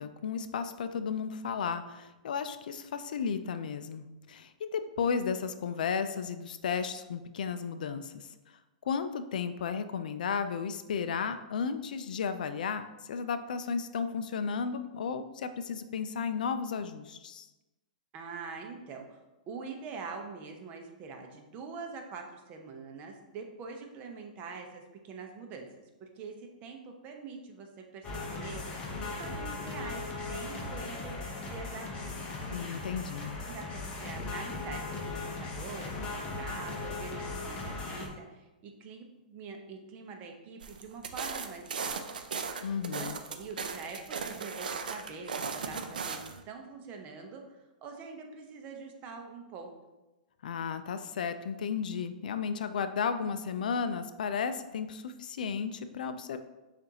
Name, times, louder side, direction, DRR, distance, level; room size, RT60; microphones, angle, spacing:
voice 1, 0.0-8.3 8.8-17.5 32.5-33.3 42.6-43.2 50.4-56.4, left 6 dB, 75° left, 10 dB, 0.3 m, -34 dB
voice 2, 18.1-19.2 19.5-32.1 33.2-42.2 43.0-49.7, right 4 dB, 35° right, 3 dB, 0.7 m, -45 dB
sound 1, 28.0-38.1, left 3 dB, 25° left, 0.8 m, -38 dB
sound 2, 40.6-46.4, right 5 dB, 85° right, 0.4 m, -37 dB
6.7 x 2.5 x 2.8 m, 1.1 s
hypercardioid pair, 135°, 5 cm